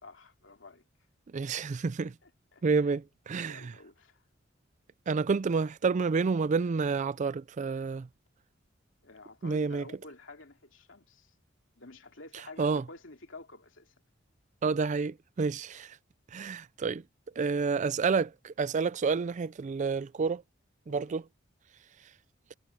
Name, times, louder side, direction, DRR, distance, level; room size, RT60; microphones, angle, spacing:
voice 1, 0.0-0.8 2.2-3.0 3.4-4.2 9.0-11.3 11.8-13.9 20.9-21.1, left 3 dB, 70° left, 3.3 m, -50 dB
voice 2, 1.3-2.1 2.6-3.7 5.1-8.1 9.4-9.8 12.6-12.8 14.6-16.0 16.3-17.0 17.4-20.4 20.9-21.2, right 4 dB, 40° right, 0.4 m, -29 dB
head